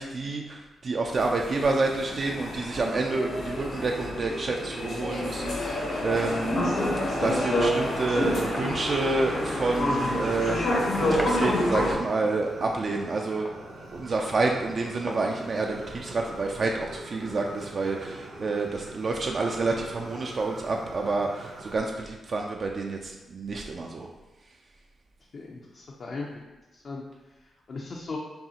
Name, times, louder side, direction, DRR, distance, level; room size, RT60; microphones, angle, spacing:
voice 1, 0.0-6.6 7.1-13.5 13.9-24.1, right 3 dB, 50° right, 1 dB, 0.3 m, -29 dB
sound 1, 1.1-11.9, left 1 dB, 85° left, 1.4 m, -28 dB
Fire, 6.8-21.8, right 2 dB, 75° right, 1.2 m, -43 dB
Knock, 7.8-8.8 10.3-11.4 13.4-13.6 14.2-14.4 15.1-15.3, equal, 5° right, 0.5 m, -38 dB
voice 2, 25.3-26.4 26.7-27.0 27.7-28.2, left 3 dB, 55° left, -1 dB, 0.5 m, -37 dB
5.3 x 2.4 x 2.8 m, 1.1 s
cardioid pair, 75°, 0 cm